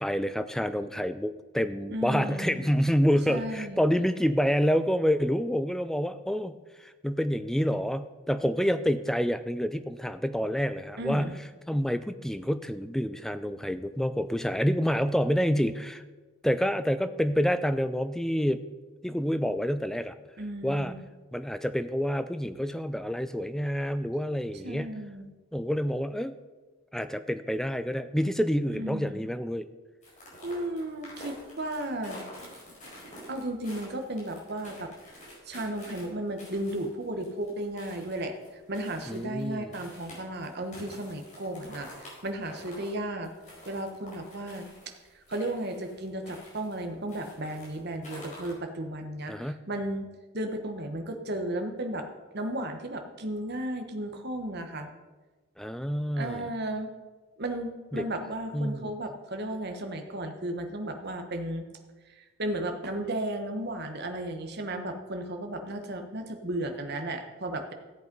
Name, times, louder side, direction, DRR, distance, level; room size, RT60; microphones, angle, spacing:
voice 1, 0.0-6.5 6.8-11.3 11.7-16.0 16.4-18.6 19.0-20.1 20.6-20.9 21.3-24.9 25.5-26.3 26.9-29.7 39.1-39.7 49.3-49.6 55.6-56.5 57.9-58.0 58.5-58.9, equal, ahead, 11 dB, 0.3 m, -28 dB
voice 2, 1.9-2.6 3.3-3.8 11.0-11.4 20.4-21.1 24.6-25.3 28.7-29.2 30.4-32.2 33.3-34.9 35.5-43.3 43.7-44.7 45.1-50.0 50.3-52.1 52.3-54.9 56.1-56.9 57.4-61.6 62.1-67.7, right 1 dB, 45° right, 5 dB, 1.2 m, -34 dB
sound 1, 30.0-46.8 47.1-48.5, left 1 dB, 35° left, 4.6 m, -48 dB
13.5 x 8.0 x 5.3 m, 1.3 s
head